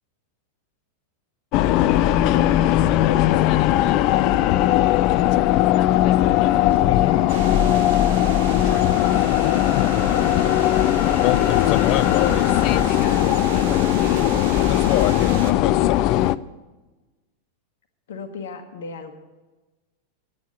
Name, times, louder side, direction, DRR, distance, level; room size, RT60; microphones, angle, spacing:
sound 1, 1.5-16.4, left 13 dB, 40° left, 0.3 m, -18 dB
voice 1, 6.7-8.0 9.9-14.0 18.1-19.1, left 4 dB, 60° left, 7 dB, 1.1 m, -37 dB
sound 2, 7.3-15.5, right 9 dB, 55° right, 0.8 m, -34 dB
10.5 x 9.2 x 6.9 m, 1.2 s
figure-of-eight pair, 90°, 0 cm